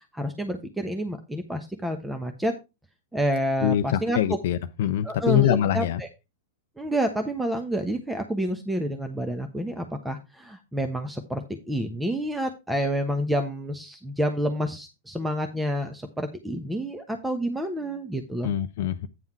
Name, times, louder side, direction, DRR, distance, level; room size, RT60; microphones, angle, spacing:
voice 1, 0.0-2.5 3.1-4.2 5.0-6.1 6.8-18.5, right 1 dB, 5° right, 1.1 m, -29 dB
voice 2, 3.6-6.0 18.4-19.1, left 11 dB, 60° left, 0.6 m, -24 dB
9.5 x 5.5 x 4.4 m
hypercardioid pair, 100°, 0 cm